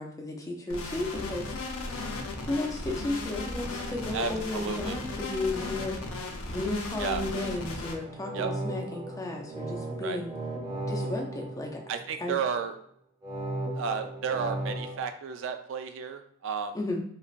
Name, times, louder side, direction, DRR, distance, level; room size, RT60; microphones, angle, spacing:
voice 1, 0.0-1.5 2.4-6.0 6.5-10.3 10.9-11.8 12.2-12.4 16.7-17.0, left 2 dB, 15° left, 1 dB, 0.4 m, -33 dB
sound 1, 0.7-7.9, left 2 dB, 90° left, 0.6 m, -36 dB
voice 2, 4.1-5.0 7.0-7.3 8.3-8.5 10.0-10.2 11.9-12.8 13.7-16.8, right 6 dB, 65° right, 8 dB, 0.3 m, -32 dB
sound 2, 8.0-12.4 13.2-15.0, right 1 dB, 15° right, 0.7 m, -36 dB
3.1 x 2.4 x 2.4 m, 0.68 s
head